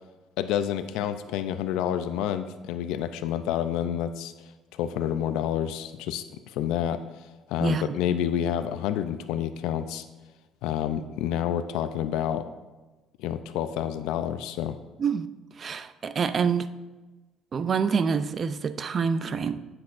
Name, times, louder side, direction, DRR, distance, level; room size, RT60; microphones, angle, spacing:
voice 1, 0.4-4.3 4.7-6.2 6.5-7.0 7.5-10.0 10.6-12.5 13.2-14.7, left 10 dB, 90° left, 10 dB, 0.4 m, -28 dB
voice 2, 7.6-8.0 15.0-15.3 15.6-16.7 17.5-19.6, right 6 dB, 35° right, 12 dB, 0.4 m, -26 dB
10.0 x 7.7 x 2.5 m, 1.2 s
cardioid pair, 135°, 0 cm